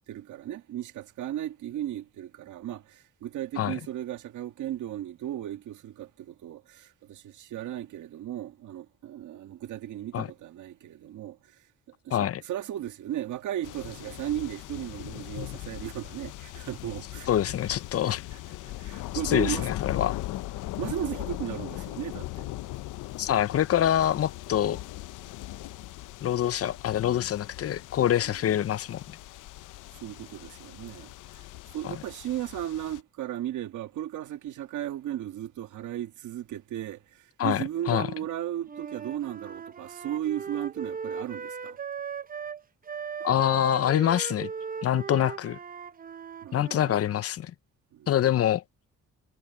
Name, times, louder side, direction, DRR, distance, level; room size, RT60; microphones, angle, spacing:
voice 1, 0.1-11.6 12.0-17.3 18.1-18.4 18.6-19.7 20.8-22.5 29.9-31.4 31.7-41.8 46.4-46.8 47.9-48.1, right 12 dB, 75° right, 1.8 m, -36 dB
voice 2, 12.1-12.4 17.3-18.2 19.2-20.2 23.2-24.8 26.2-29.0 31.8-32.0 37.4-38.1 43.2-44.5 44.8-45.6 46.5-47.5 48.1-48.6, left 11 dB, 50° left, 0.7 m, -25 dB
sound 1, 13.6-33.0, left 16 dB, 85° left, 0.8 m, -39 dB
Wind instrument woodwind instrument, 38.6-47.0, right 6 dB, 30° right, 0.8 m, -38 dB
cardioid pair, 90°, 30 cm